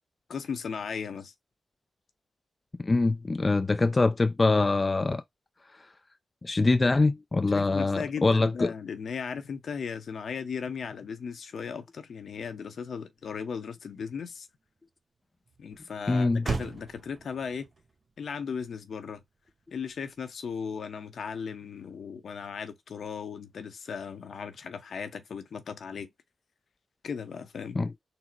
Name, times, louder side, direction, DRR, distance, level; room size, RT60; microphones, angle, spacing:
voice 1, 0.3-1.3 7.5-14.5 15.6-17.7 18.2-19.2 19.7-26.1 27.0-27.8, left 6 dB, 70° left, 0.6 m, -37 dB
voice 2, 2.8-5.2 6.4-8.7 16.1-16.5 27.8-27.9, left 3 dB, 35° left, 0.3 m, -24 dB
Motor vehicle (road), 13.0-21.0, right 4 dB, 50° right, 1.0 m, -42 dB
4.0 x 2.0 x 4.4 m
cardioid pair, 60°, 0 cm